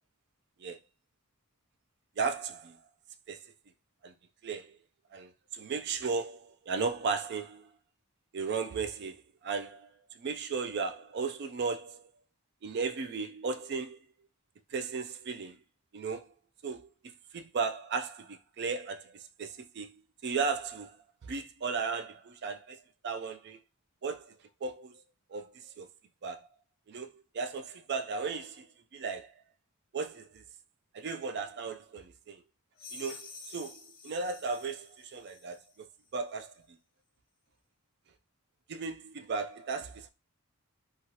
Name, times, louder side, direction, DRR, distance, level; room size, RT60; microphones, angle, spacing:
voice 1, 2.2-2.8 3.3-3.5 4.0-4.1 4.4-4.8 5.1-7.7 8.3-9.9 10.2-12.0 12.6-14.0 14.7-15.6 15.9-16.3 16.6-16.9 17.3-20.0 20.2-21.0 21.2-23.6 24.0-24.3 24.6-25.0 25.3-25.9 26.2-26.5 26.9-28.7 28.9-29.3 29.9-30.4 30.9-32.4 32.9-35.9 36.1-36.5 38.7-40.1, right 5 dB, 50° right, 0.4 m, -35 dB
sound 1, 32.8-35.8, left 4 dB, 40° left, 0.5 m, -49 dB
3.0 x 2.3 x 2.8 m
head